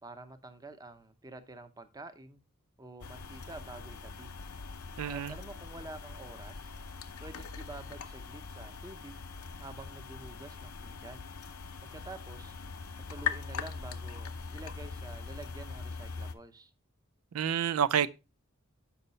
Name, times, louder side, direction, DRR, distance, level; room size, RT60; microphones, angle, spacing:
voice 1, 0.0-2.4 2.8-4.3 5.0-6.7 7.2-9.2 9.6-11.3 11.8-12.6 13.1-16.7, right 2 dB, 15° right, 0.7 m, -48 dB
sound 1, 3.0-16.3, left 5 dB, 80° left, 0.7 m, -41 dB
voice 2, 5.0-5.3 17.3-18.1, right 8 dB, 85° right, 0.4 m, -28 dB
7.1 x 5.5 x 4.0 m
head